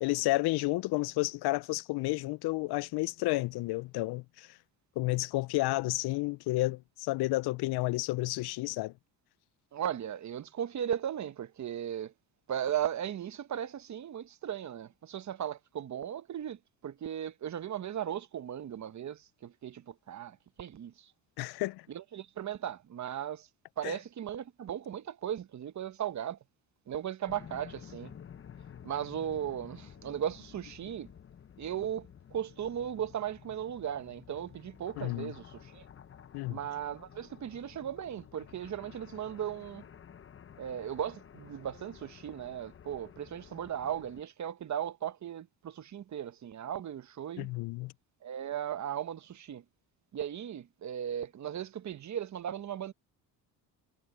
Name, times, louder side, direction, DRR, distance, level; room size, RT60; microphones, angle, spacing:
voice 1, 0.0-4.6 5.0-8.9 21.4-21.9 23.8-24.0 35.0-35.3 36.3-36.6 47.4-47.9, left 20 dB, 65° left, 0.5 m, -31 dB
voice 2, 9.7-12.1 12.5-21.1 21.9-23.5 23.8-26.4 26.9-28.1 28.8-31.1 31.6-35.9 36.5-39.8 40.6-47.5 48.2-49.6 50.1-52.9, right 10 dB, 45° right, 1.0 m, -37 dB
sound 1, 27.3-44.2, left 8 dB, 30° left, 0.8 m, -52 dB
cardioid pair, 90°, 41 cm